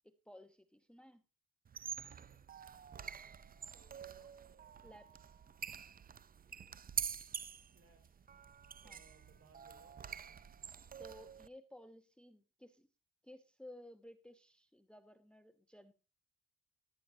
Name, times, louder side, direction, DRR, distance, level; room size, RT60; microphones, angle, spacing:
voice 1, 0.0-1.2 4.8-5.4 8.8-9.0 11.0-12.9 13.2-15.9, left 1 dB, 5° left, 11 dB, 0.9 m, -57 dB
sound 1, 1.6-11.5, right 7 dB, 25° right, 0.5 m, -46 dB
voice 2, 3.7-4.3 7.7-8.1 8.8-10.0, right 4 dB, 45° right, 6 dB, 4.9 m, -66 dB
14.5 x 12.0 x 2.7 m, 0.31 s
cardioid pair, 80°, 34 cm